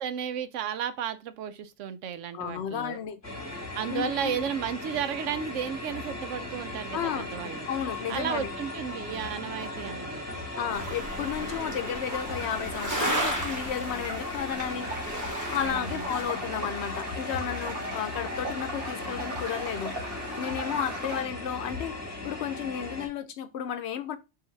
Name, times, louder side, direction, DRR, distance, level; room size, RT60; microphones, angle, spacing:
voice 1, 0.0-3.0 3.7-7.7 8.1-10.2 15.6-16.1, right 8 dB, 85° right, 0.9 m, -33 dB
voice 2, 2.3-3.2 3.9-4.4 6.9-7.3 7.7-8.5 10.6-14.9 15.5-20.0 20.4-24.2, left 9 dB, 70° left, 0.8 m, -33 dB
sound 1, 3.2-23.1, left 2 dB, 15° left, 1.1 m, -37 dB
sound 2, 10.7-14.4 14.7-16.2, right 1 dB, 15° right, 1.0 m, -34 dB
sound 3, 12.1-21.2, right 2 dB, 50° right, 1.3 m, -39 dB
5.6 x 2.6 x 3.2 m
omnidirectional pair, 1.2 m